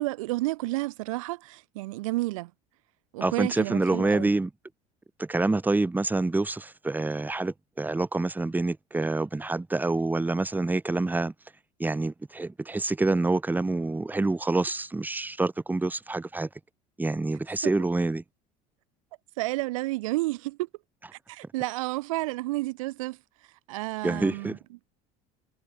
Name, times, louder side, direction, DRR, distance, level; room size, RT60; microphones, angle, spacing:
voice 1, 0.0-2.5 3.1-4.3 17.6-17.7 19.4-20.7 21.3-23.2 23.7-24.6, right 20 dB, 90° right, 0.9 m, -31 dB
voice 2, 3.2-4.5 5.2-11.3 11.8-16.5 17.0-18.2 24.0-24.6, right 2 dB, 10° right, 1.2 m, -27 dB
supercardioid pair, 90°, 17 cm